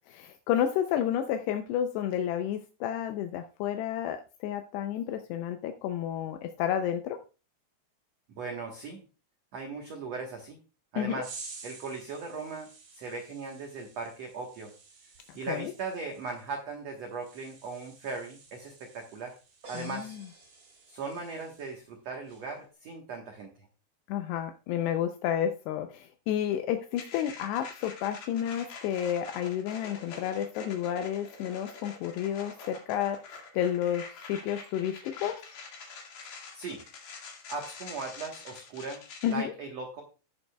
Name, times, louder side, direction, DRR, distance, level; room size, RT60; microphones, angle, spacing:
voice 1, 0.1-7.2 11.0-11.2 15.3-15.7 19.7-20.2 24.1-35.4 39.2-39.5, left 10 dB, 80° left, 7 dB, 2.7 m, -31 dB
voice 2, 8.3-9.0 9.5-10.6 10.9-11.3 11.6-14.7 15.3-19.4 19.7-20.2 20.9-23.7 36.5-36.8 37.1-37.2 37.5-40.0, right 4 dB, 65° right, 1 dB, 1.6 m, -38 dB
sound 1, 11.2-21.9 22.2-22.6, right 4 dB, 85° right, 6.0 m, -51 dB
sound 2, 19.6-21.4, right 2 dB, 30° right, 5.8 m, -52 dB
sound 3, 27.0-39.3, left 5 dB, 55° left, 3.2 m, -46 dB
17.5 x 6.8 x 2.3 m, 0.33 s
omnidirectional pair, 4.9 m